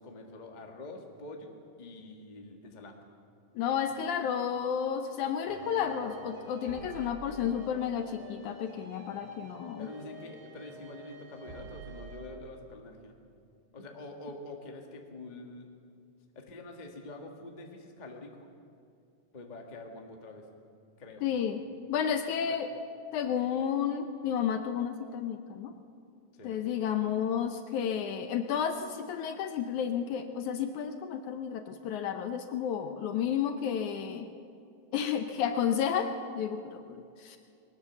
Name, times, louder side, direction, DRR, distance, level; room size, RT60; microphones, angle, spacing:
voice 1, 0.0-3.0 3.9-4.2 9.8-13.2 13.7-15.7 16.3-18.5 19.3-20.5 21.0-21.2 22.5-22.6 25.6-25.8 26.3-26.6, left 2 dB, 25° left, 2 dB, 1.0 m, -46 dB
voice 2, 3.6-9.9 21.2-21.6 21.9-22.7 23.1-25.7 26.4-34.3 34.9-37.4, left 8 dB, 70° left, 7 dB, 2.0 m, -32 dB
sound 1, 5.5-12.4, right 2 dB, 80° right, 4.7 m, -48 dB
21.5 x 18.5 x 7.1 m, 2.5 s
omnidirectional pair, 3.9 m